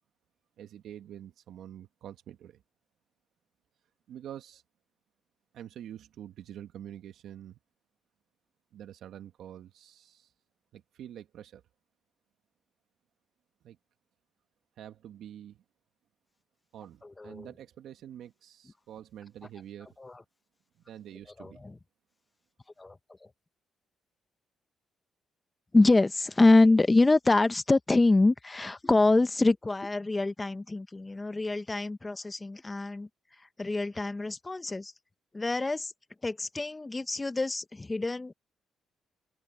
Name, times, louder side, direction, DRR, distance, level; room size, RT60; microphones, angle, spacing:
voice 1, 0.6-2.6 4.1-4.6 5.5-7.6 8.7-10.3 10.7-11.6 13.6-13.8 14.8-15.6 16.7-20.0 20.9-21.6, right 10 dB, 75° right, 1.7 m, -46 dB
voice 2, 25.7-33.1 33.6-34.9 35.3-35.9 36.2-38.3, left 2 dB, 25° left, 1.3 m, -25 dB
open air
supercardioid pair, 65°, 0 cm